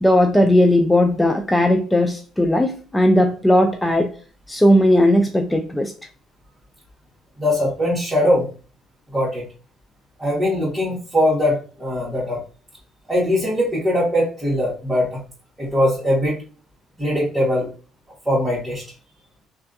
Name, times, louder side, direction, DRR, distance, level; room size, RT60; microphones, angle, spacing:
voice 1, 0.0-4.1 4.5-5.9, left 1 dB, 10° left, 4 dB, 0.4 m, -17 dB
voice 2, 7.4-8.4 9.1-9.4 10.2-12.4 13.1-15.2 15.6-16.4 17.0-17.7 18.2-18.8, left 1 dB, 10° right, -8 dB, 1.7 m, -21 dB
3.2 x 2.5 x 2.6 m, 0.38 s
supercardioid pair, 80°, 0 cm